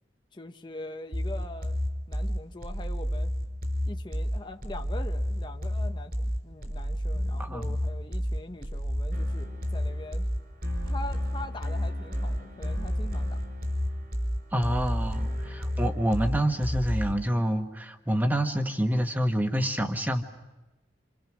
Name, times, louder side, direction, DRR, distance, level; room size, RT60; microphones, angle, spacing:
voice 1, 0.3-1.8 2.1-3.3 3.9-10.3 10.8-13.4, left 2 dB, 25° left, 5 dB, 0.8 m, -42 dB
sound 1, 1.1-17.1, equal, 55° right, 4.8 m, -30 dB
voice 2, 7.4-7.7 14.5-20.2, equal, 10° right, 5 dB, 1.5 m, -27 dB
28.0 x 27.5 x 6.3 m, 1.1 s
head